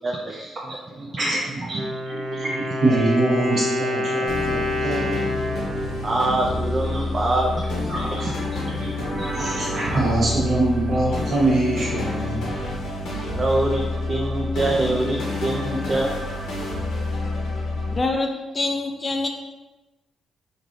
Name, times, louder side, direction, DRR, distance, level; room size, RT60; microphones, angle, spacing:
voice 1, 0.0-1.1 1.7-1.8 6.0-7.6 8.2-8.9 13.3-16.1, right 2 dB, 40° right, -1 dB, 0.4 m, -25 dB
voice 2, 0.7-5.2 6.9-7.0 7.9-12.5, right 2 dB, 55° right, -5 dB, 1.1 m, -24 dB
Wind instrument woodwind instrument, 1.6-7.4, left 1 dB, 85° right, 0.7 m, -28 dB
sound 1, 4.3-18.0, left 2 dB, 90° left, 0.8 m, -28 dB
voice 3, 17.9-19.3, left 2 dB, 35° left, 3 dB, 0.4 m, -25 dB
3.2 x 2.4 x 2.5 m, 1.1 s
cardioid pair, 70°, 0 cm